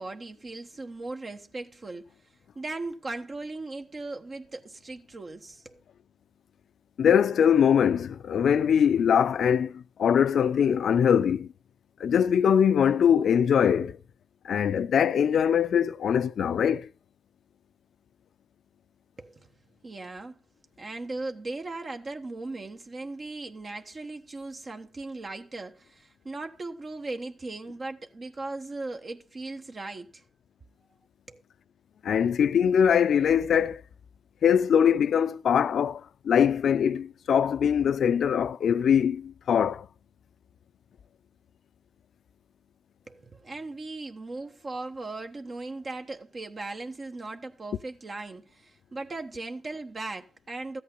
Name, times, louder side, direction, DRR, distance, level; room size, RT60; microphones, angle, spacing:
voice 1, 0.0-2.1 2.5-5.8 19.2-19.5 19.8-20.4 20.8-30.2 31.3-31.4 43.1-50.8, right 2 dB, 40° right, 1.1 m, -38 dB
voice 2, 7.0-11.5 12.0-14.0 14.4-16.9 32.0-33.8 34.4-39.9, left 8 dB, 75° left, 0.5 m, -22 dB
13.5 x 8.5 x 5.3 m
cardioid pair, 75°, 0 cm